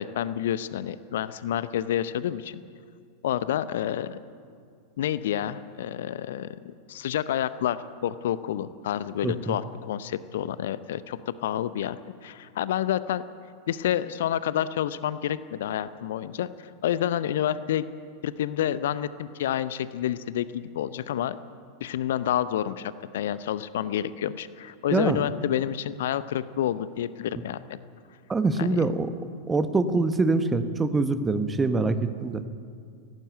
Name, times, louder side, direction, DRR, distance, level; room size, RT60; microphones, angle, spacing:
voice 1, 0.0-2.6 3.2-4.2 5.0-12.0 12.2-13.2 13.7-17.9 18.2-21.4 21.8-27.8 28.6-28.9, left 11 dB, 60° left, 15 dB, 0.7 m, -29 dB
voice 2, 9.2-9.6 24.9-25.2 28.3-29.1 29.5-32.4, right 3 dB, 15° right, 10 dB, 1.3 m, -24 dB
17.5 x 16.0 x 9.3 m, 2.2 s
figure-of-eight pair, 90°, 0 cm